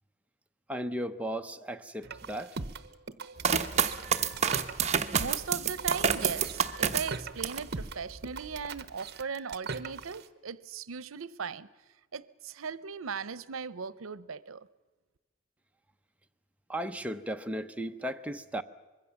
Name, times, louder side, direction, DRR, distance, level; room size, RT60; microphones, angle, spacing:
voice 1, 0.7-2.6 16.7-18.6, equal, 5° right, 0.8 m, -35 dB
sound 1, 2.0-10.3, right 4 dB, 55° right, 1.0 m, -41 dB
sound 2, 3.4-7.7 8.2-8.8, right 7 dB, 35° right, 1.1 m, -28 dB
voice 2, 5.2-11.7 12.1-14.7, right 5 dB, 90° right, 0.7 m, -38 dB
25.0 x 22.0 x 7.1 m
head